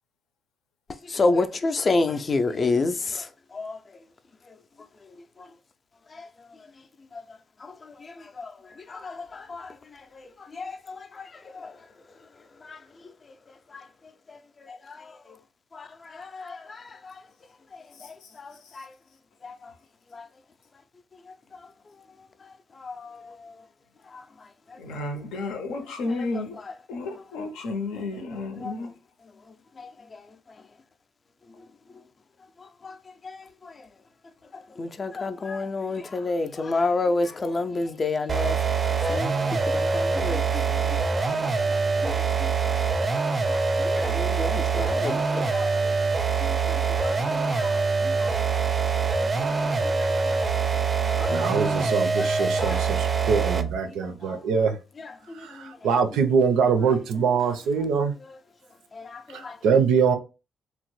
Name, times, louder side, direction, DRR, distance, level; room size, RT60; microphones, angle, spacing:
voice 1, 1.1-3.3 3.5-3.8 7.1-7.2 7.6-8.5 8.9-10.0 10.5-11.7 12.6-12.8 15.7-15.9 16.2-17.2 18.4-18.9 19.4-19.5 20.1-20.3 22.8-23.3 24.1-24.2 28.6-28.7 29.8-29.9 32.8-32.9 33.2-33.7 34.8-42.8 43.1-45.9 46.4-48.6 49.2-50.4 51.0-51.5 52.2-52.8 54.2-54.4 55.0-55.8 58.9-59.6, left 3 dB, 35° left, 0.4 m, -31 dB
voice 2, 24.8-26.6 26.9-28.9, left 3 dB, 90° left, 0.6 m, -32 dB
sound 1, 38.3-53.8, right 4 dB, 30° right, 0.4 m, -24 dB
voice 3, 51.3-54.8 55.3-58.1 59.3-60.2, right 6 dB, 85° right, 0.5 m, -23 dB
2.9 x 2.1 x 3.0 m
cardioid pair, 90°, 0 cm